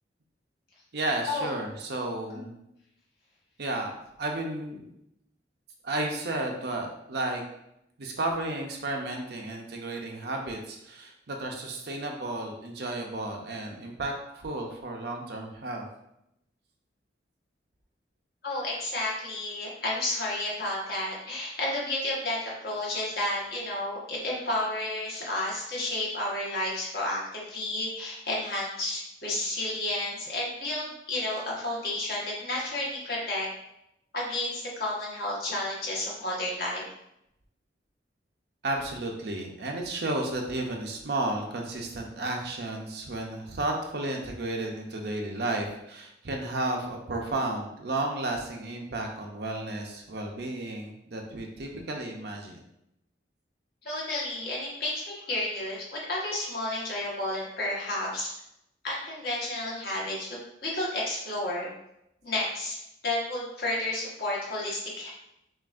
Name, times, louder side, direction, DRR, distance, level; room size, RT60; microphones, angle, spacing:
voice 1, 0.9-2.6 3.6-4.9 5.8-7.4 8.0-15.9 38.6-52.6, right 2 dB, 60° right, 1 dB, 0.6 m, -33 dB
voice 2, 18.4-33.5 34.1-36.8 53.8-58.3 58.8-61.7 62.2-65.1, left 1 dB, 55° left, -5 dB, 1.3 m, -31 dB
5.9 x 2.5 x 2.5 m, 0.81 s
head